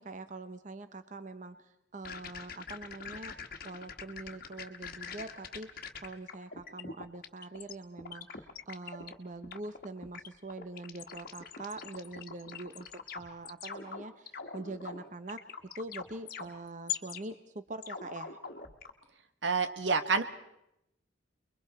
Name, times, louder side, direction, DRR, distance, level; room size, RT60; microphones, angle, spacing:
voice 1, 0.0-3.3 3.6-15.4 15.8-18.4, right 2 dB, 45° right, 10 dB, 0.9 m, -44 dB
sound 1, 2.0-7.7 8.0-9.1 9.4-17.2 17.8-18.9, left 7 dB, 50° left, 1.5 m, -42 dB
voice 2, 19.4-20.2, right 4 dB, 85° right, 9 dB, 1.5 m, -28 dB
29.5 x 22.5 x 4.3 m, 0.82 s
head